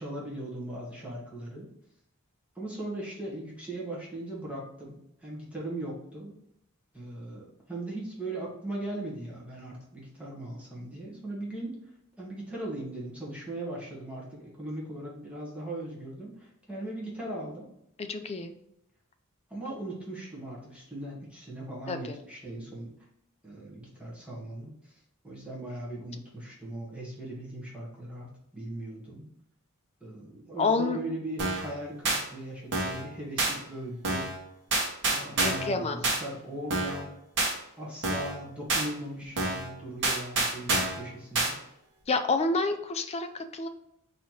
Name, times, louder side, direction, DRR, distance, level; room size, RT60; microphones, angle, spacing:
voice 1, 0.0-1.7 2.5-6.3 6.9-11.8 12.2-17.7 19.5-22.9 23.4-29.3 30.0-34.3 35.1-37.1 37.8-41.6, right 1 dB, 5° right, -5 dB, 1.1 m, -39 dB
voice 2, 18.0-18.5 21.9-22.2 30.6-31.0 35.4-36.0 42.1-43.7, left 3 dB, 30° left, 7 dB, 0.4 m, -28 dB
sound 1, 31.4-31.7 32.0-32.2 32.7-33.0 33.4-33.5 34.0-34.4 34.7-35.7 36.0-36.2 36.7-37.0 37.4-37.5 38.0-38.4 38.7-38.9 39.4-39.7 40.0-41.0 41.3-41.5, right 2 dB, 55° right, 1.1 m, -27 dB
4.1 x 2.8 x 4.4 m, 0.78 s
head